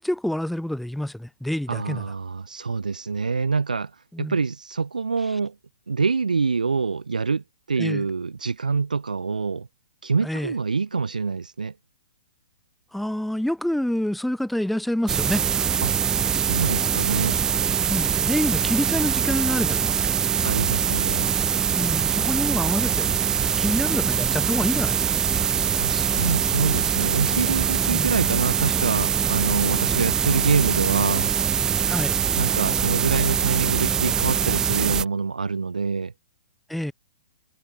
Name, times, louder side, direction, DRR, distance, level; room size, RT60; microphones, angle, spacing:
voice 1, 0.0-2.1 4.1-4.4 7.8-8.0 10.2-10.5 12.9-15.4 17.9-20.0 21.7-25.2 27.9-28.1 31.9-32.2 36.7-36.9, left 1 dB, ahead, 4.3 m, -27 dB
voice 2, 1.7-3.9 4.2-5.5 5.9-9.7 10.0-11.7 15.8-15.9 16.3-17.4 20.4-21.3 25.7-31.3 32.3-36.1, right 4 dB, 85° right, 2.5 m, -26 dB
sound 1, 15.1-35.0, right 7 dB, 15° right, 0.3 m, -23 dB
sound 2, 26.2-27.6, left 40 dB or more, 35° left, 5.3 m, -40 dB
hypercardioid pair, 125°, 4 cm